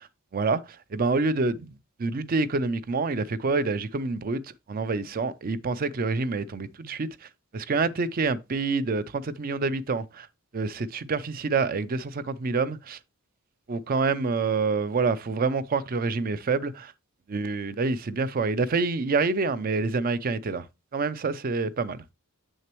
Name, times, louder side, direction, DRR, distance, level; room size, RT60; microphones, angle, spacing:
voice 1, 0.3-1.7 2.0-10.3 10.5-13.0 13.7-16.9 17.3-20.7 20.9-22.0, right 4 dB, 40° right, 0.5 m, -27 dB
6.7 x 6.4 x 3.0 m
head